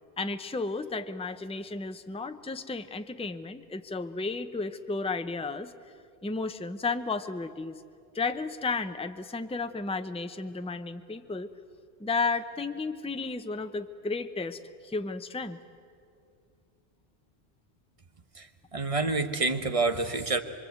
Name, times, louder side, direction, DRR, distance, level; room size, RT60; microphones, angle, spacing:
voice 1, 0.2-5.7 6.2-7.8 8.1-11.5 12.0-15.6, left 3 dB, 5° left, 9 dB, 0.6 m, -33 dB
voice 2, 18.7-20.4, right 3 dB, 30° right, 8 dB, 1.2 m, -27 dB
24.5 x 24.5 x 8.2 m, 2.4 s
omnidirectional pair, 1.1 m